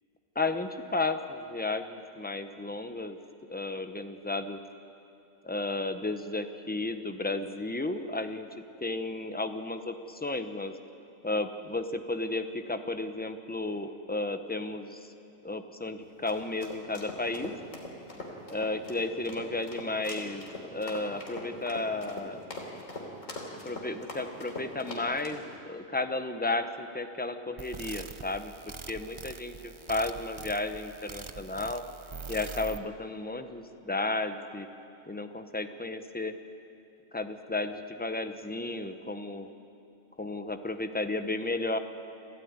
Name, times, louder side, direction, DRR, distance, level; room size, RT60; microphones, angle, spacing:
voice 1, 0.3-3.2 3.5-4.6 5.4-8.5 8.8-10.7 11.2-15.1 15.4-17.5 18.5-22.4 23.6-28.5 28.9-31.8 32.3-34.7 35.1-36.4 37.1-39.5 40.2-41.8, left 2 dB, 10° left, 8 dB, 0.7 m, -33 dB
sound 1, 16.0-25.4, left 2 dB, 65° left, 3.6 m, -41 dB
sound 2, 27.6-32.8, right 5 dB, 35° right, 0.5 m, -43 dB
28.5 x 13.5 x 9.6 m, 2.7 s
omnidirectional pair, 1.5 m